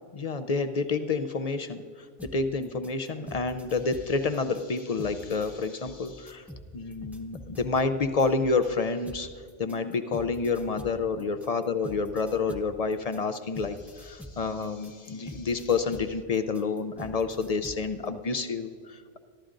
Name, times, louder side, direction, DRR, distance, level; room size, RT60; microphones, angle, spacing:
voice 1, 0.1-1.8 2.2-6.4 6.7-9.3 9.6-19.2, left 4 dB, 55° left, 10 dB, 0.4 m, -29 dB
sound 1, 2.2-8.7 9.0-17.9, equal, ahead, 0.8 m, -45 dB
23.0 x 12.5 x 2.6 m, 2.1 s
omnidirectional pair, 1.2 m